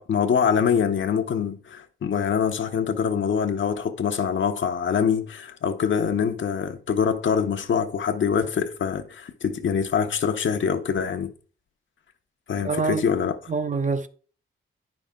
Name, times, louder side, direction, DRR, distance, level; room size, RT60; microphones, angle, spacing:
voice 1, 0.0-11.3 12.5-13.4, left 7 dB, 70° left, 1.0 m, -24 dB
voice 2, 12.6-13.1 13.5-14.1, right 4 dB, 40° right, 0.8 m, -25 dB
9.3 x 5.8 x 3.7 m
cardioid pair, 80°, 21 cm